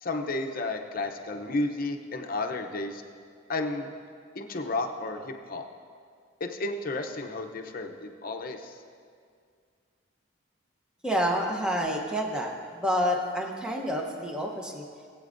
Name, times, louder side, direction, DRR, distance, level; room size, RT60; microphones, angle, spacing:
voice 1, 0.0-3.0 3.5-3.9 4.3-5.6 6.4-8.8, left 2 dB, 45° left, 4 dB, 0.7 m, -32 dB
voice 2, 11.0-14.8, equal, 5° right, 0 dB, 0.8 m, -28 dB
19.0 x 8.4 x 2.6 m, 2.2 s
head